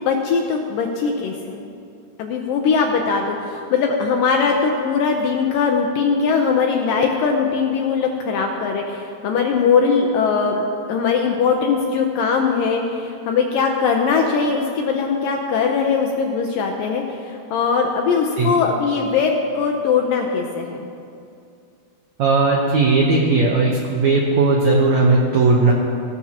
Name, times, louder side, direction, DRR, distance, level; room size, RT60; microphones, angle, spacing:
voice 1, 0.0-1.7 2.2-10.6 10.9-20.9, left 5 dB, 75° left, 2 dB, 2.1 m, -20 dB
voice 2, 22.2-25.7, right 3 dB, 80° right, -1 dB, 1.6 m, -17 dB
17.5 x 12.0 x 2.9 m, 2.4 s
omnidirectional pair, 4.7 m